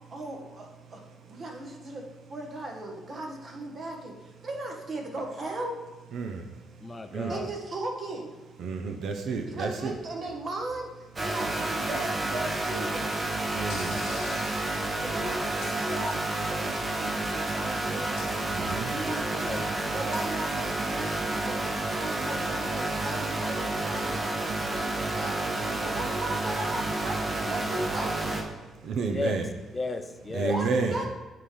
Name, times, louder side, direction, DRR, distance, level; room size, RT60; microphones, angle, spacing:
voice 1, 0.1-2.0 2.3-5.8 7.3-8.4 9.4-13.1 15.0-18.2 18.9-28.5 30.5-31.1, right 2 dB, 45° right, 1 dB, 1.3 m, -37 dB
voice 2, 6.1-6.5 7.1-7.3 8.6-9.9 13.5-14.0 18.5-18.9 28.8-29.5 30.3-31.0, right 4 dB, 70° right, 5 dB, 0.6 m, -30 dB
voice 3, 6.8-7.5 13.8-14.4 19.0-19.6 25.8-25.9 29.1-29.4 29.7-30.6, left 3 dB, 25° left, 7 dB, 0.5 m, -34 dB
sound 1, 11.2-28.4, right 2 dB, 30° right, 1.0 m, -30 dB
sound 2, 11.8-12.1 13.7-14.6 15.6-16.4 18.2-19.0 20.1-21.3, left 5 dB, 85° left, 1.1 m, -47 dB
9.1 x 3.8 x 3.3 m, 1.2 s
cardioid pair, 90°, 0 cm